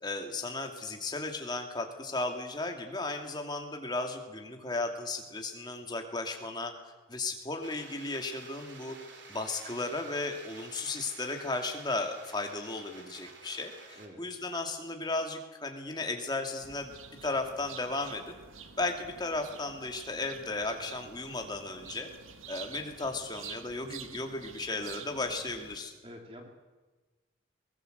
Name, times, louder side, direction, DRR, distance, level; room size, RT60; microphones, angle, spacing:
voice 1, 0.0-6.7 7.1-9.0 9.3-16.9 17.2-18.2 18.8-22.1 22.5-25.9, left 2 dB, 20° left, 4 dB, 2.5 m, -35 dB
sound 1, 7.6-14.1, right 4 dB, 60° right, 3.2 m, -51 dB
sound 2, 16.6-25.8, right 7 dB, 85° right, 1.7 m, -49 dB
voice 2, 26.0-26.5, equal, 25° right, 3 dB, 2.5 m, -47 dB
22.0 x 19.5 x 8.0 m, 1.2 s
head